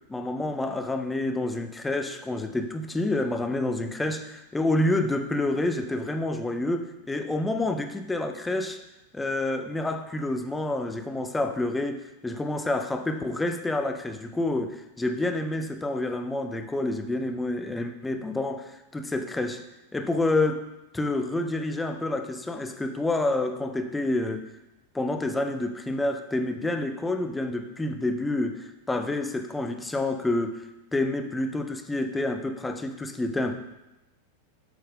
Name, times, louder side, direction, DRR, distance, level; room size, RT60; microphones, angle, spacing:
voice 1, 0.1-8.8 9.1-19.6 19.9-20.6 20.9-24.5 24.9-30.7 30.9-33.6, left 2 dB, 10° left, 7 dB, 0.6 m, -28 dB
8.0 x 5.6 x 3.6 m, 0.98 s
figure-of-eight pair, 90°, 0 cm